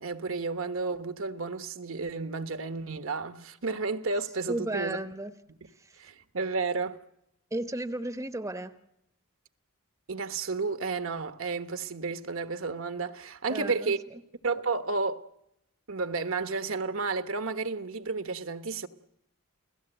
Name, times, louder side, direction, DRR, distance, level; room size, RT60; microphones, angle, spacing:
voice 1, 0.0-5.0 6.0-7.0 10.1-14.0 14.4-15.2 15.9-18.9, right 4 dB, 65° right, 1.1 m, -32 dB
voice 2, 4.5-5.3 5.8-6.0 7.5-8.7 13.5-13.9, right 1 dB, 15° right, 0.9 m, -34 dB
29.5 x 17.0 x 8.0 m
head